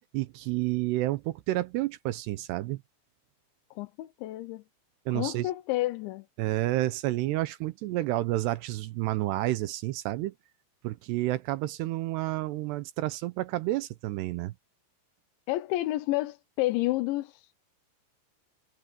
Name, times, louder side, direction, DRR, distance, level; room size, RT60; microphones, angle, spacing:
voice 1, 0.1-2.8 5.1-5.5 6.4-10.3 10.8-14.5, right 17 dB, 80° right, 2.5 m, -30 dB
voice 2, 3.8-4.6 5.1-6.3 15.5-17.6, left 17 dB, 80° left, 3.2 m, -30 dB
omnidirectional pair, 5.3 m